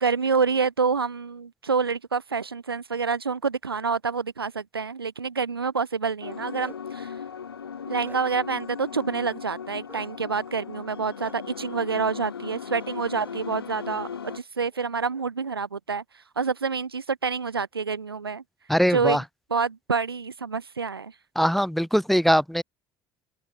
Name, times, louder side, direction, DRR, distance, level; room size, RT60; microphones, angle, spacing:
voice 1, 0.0-7.1 7.9-16.0 16.4-18.4 18.9-19.2 19.5-21.1, right 5 dB, 85° right, 1.0 m, -27 dB
sound 1, 6.2-14.4, left 7 dB, 85° left, 1.3 m, -38 dB
Bark, 6.2-7.0 7.5-8.5 9.9-10.1 11.2-11.3 12.7-12.9 13.2-13.4 14.2-14.4 14.7-15.6, right 3 dB, 15° right, 6.1 m, -50 dB
voice 2, 18.7-19.2 21.4-22.6, equal, ahead, 1.0 m, -21 dB
open air
figure-of-eight pair, 60°, 12 cm